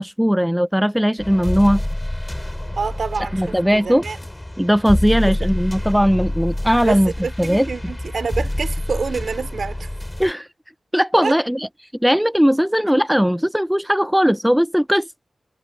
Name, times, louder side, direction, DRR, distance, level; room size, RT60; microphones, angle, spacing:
voice 1, 0.0-1.8 3.3-4.0 4.6-7.1 7.4-7.7 10.2-10.5 10.9-11.7 12.0-15.1, equal, 5° right, 0.5 m, -18 dB
sound 1, 1.2-10.3, left 1 dB, 15° left, 5.4 m, -27 dB
voice 2, 2.8-4.2 5.3-5.4 6.8-9.9 11.2-11.3, right 5 dB, 70° right, 3.6 m, -27 dB
wide cardioid pair, 70°, 0 cm